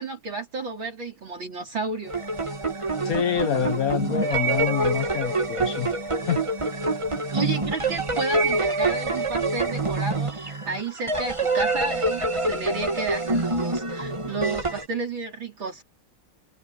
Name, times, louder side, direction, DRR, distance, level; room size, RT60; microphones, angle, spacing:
voice 1, 0.0-2.1 7.3-15.8, right 3 dB, 60° right, 4.8 m, -32 dB
sound 1, 2.0-14.9, right 2 dB, 15° right, 1.5 m, -26 dB
voice 2, 3.0-5.9 6.3-6.4, left 9 dB, 60° left, 1.0 m, -26 dB
omnidirectional pair, 2.4 m